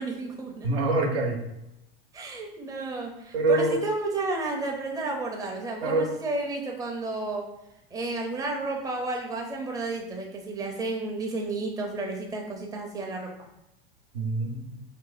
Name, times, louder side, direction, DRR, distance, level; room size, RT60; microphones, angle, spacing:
voice 1, 0.0-0.8 2.1-7.5 7.9-13.5, right 2 dB, 10° right, 0 dB, 0.6 m, -32 dB
voice 2, 0.6-1.4 3.3-3.8 5.8-6.1 14.1-14.8, right 2 dB, 75° right, 1 dB, 0.8 m, -25 dB
2.8 x 2.6 x 3.9 m, 0.87 s
hypercardioid pair, 90°, 31 cm